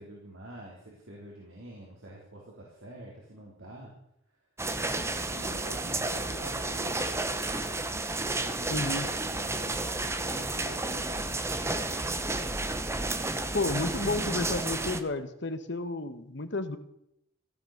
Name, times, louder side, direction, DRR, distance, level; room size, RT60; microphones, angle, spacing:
voice 1, 0.0-3.9 4.3-4.4 4.9-7.1 8.1-11.3, right 1 dB, 80° right, -3 dB, 4.0 m, -47 dB
sound 1, 4.6-15.0, right 2 dB, 15° right, 1.0 m, -31 dB
voice 2, 8.7-9.1 13.5-16.8, left 2 dB, 60° left, 9 dB, 1.6 m, -31 dB
17.0 x 12.5 x 6.7 m, 0.78 s
head